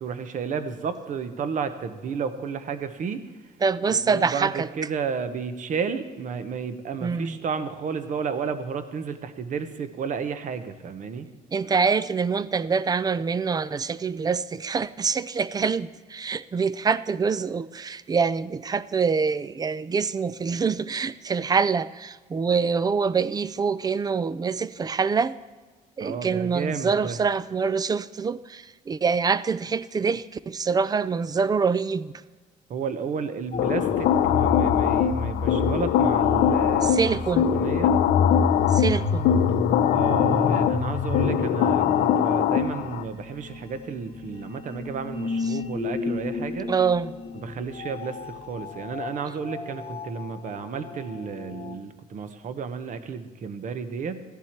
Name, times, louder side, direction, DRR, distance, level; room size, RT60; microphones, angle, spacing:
voice 1, 0.0-3.2 3.9-11.3 26.0-27.2 32.7-37.2 37.5-38.0 39.9-46.7 47.4-54.2, right 6 dB, 50° right, 11 dB, 1.0 m, -32 dB
voice 2, 3.6-4.7 7.0-7.4 11.5-25.3 26.0-32.1 36.8-37.5 38.7-39.3 46.7-47.1, right 5 dB, 25° right, 17 dB, 0.4 m, -25 dB
sound 1, 33.5-51.7, left 5 dB, 40° left, 1.1 m, -30 dB
sound 2, 33.6-43.0, left 9 dB, 80° left, 0.6 m, -22 dB
15.0 x 10.5 x 4.5 m, 1.4 s
cardioid pair, 110°, 17 cm